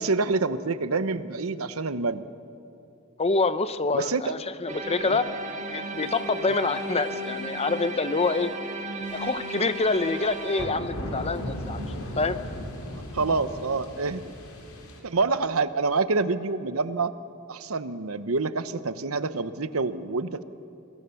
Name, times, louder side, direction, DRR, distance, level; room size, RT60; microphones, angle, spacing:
voice 1, 0.0-2.2 3.9-4.3 5.1-5.2 13.1-14.3 15.0-17.1 17.5-20.4, right 3 dB, 75° right, 13 dB, 0.9 m, -27 dB
voice 2, 3.2-5.3 5.7-8.5 9.1-11.8 12.2-12.4, left 3 dB, 30° left, 12 dB, 0.8 m, -26 dB
sound 1, 4.7-10.7, right 2 dB, 35° right, 2.2 m, -35 dB
sound 2, 9.0-15.0, left 1 dB, 80° left, 4.2 m, -37 dB
27.5 x 21.0 x 7.1 m, 2.6 s
head